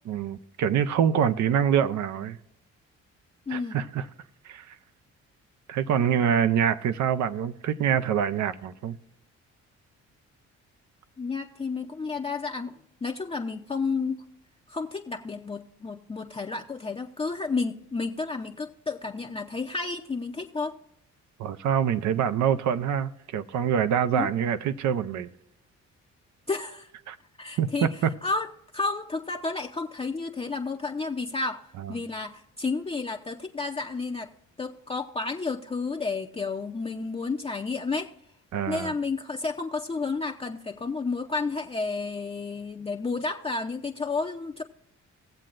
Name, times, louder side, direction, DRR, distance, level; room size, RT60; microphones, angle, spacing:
voice 1, 0.1-2.4 3.5-4.1 4.4-4.8 5.7-9.0 21.4-25.3 27.1-27.2 27.6-28.1 31.8-31.9 38.5-38.9, right 8 dB, 70° right, 0.6 m, -25 dB
voice 2, 3.5-3.8 11.2-12.7 13.0-14.2 14.7-20.7 24.1-24.3 26.5-26.9 27.4-27.9 28.2-34.3 34.6-38.1 38.7-44.6, left 4 dB, 20° left, 0.6 m, -31 dB
19.0 x 7.5 x 2.5 m
cardioid pair, 90°, 30 cm